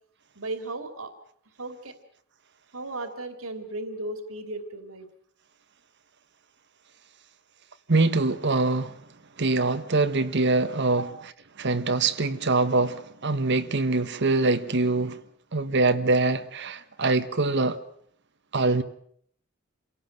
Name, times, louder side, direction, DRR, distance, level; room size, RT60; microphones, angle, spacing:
voice 1, 0.4-1.1 1.6-1.9 2.7-5.1 11.0-11.1, right 2 dB, 90° right, 2.8 m, -35 dB
voice 2, 7.9-8.9 9.4-11.1 11.6-15.2 15.5-17.8 18.5-18.8, right 3 dB, 60° right, 1.4 m, -24 dB
27.5 x 17.5 x 7.9 m
head